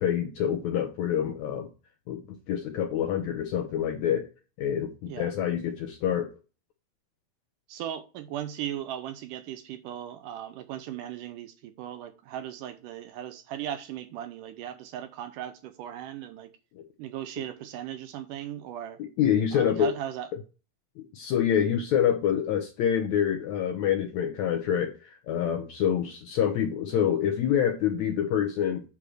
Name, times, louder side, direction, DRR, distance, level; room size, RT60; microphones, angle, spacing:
voice 1, 0.0-1.7 2.1-2.2 2.5-4.3 4.6-6.3 19.2-19.9 21.0-28.8, left 9 dB, 75° left, 1.7 m, -26 dB
voice 2, 7.7-16.5 17.0-19.0 19.5-20.3, right 11 dB, 80° right, 2.0 m, -37 dB
8.4 x 3.4 x 6.3 m
omnidirectional pair, 4.1 m